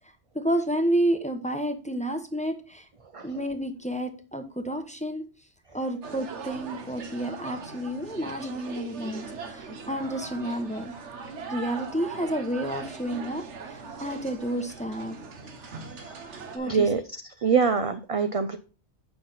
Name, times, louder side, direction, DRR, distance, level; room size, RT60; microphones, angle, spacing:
voice 1, 0.3-2.8 3.2-5.2 5.7-10.9 11.5-15.1 16.5-16.9, right 1 dB, 5° left, 6 dB, 0.8 m, -30 dB
sound 1, 6.0-16.6, right 5 dB, 80° right, 1.3 m, -40 dB
voice 2, 16.6-17.0 17.4-18.6, right 6 dB, 55° right, 9 dB, 0.4 m, -24 dB
7.7 x 5.7 x 3.9 m, 0.35 s
omnidirectional pair, 1.2 m